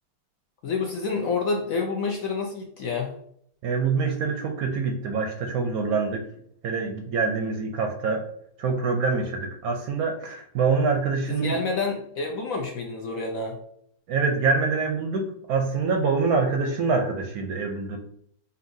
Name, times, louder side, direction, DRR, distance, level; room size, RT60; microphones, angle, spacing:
voice 1, 0.6-3.1 11.3-13.6, left 4 dB, 70° left, 1 dB, 0.8 m, -28 dB
voice 2, 3.6-6.2 6.6-8.2 8.6-11.5 14.1-15.2 15.5-18.0, right 4 dB, 70° right, 3 dB, 0.9 m, -25 dB
5.4 x 2.7 x 2.6 m, 0.68 s
omnidirectional pair, 1.9 m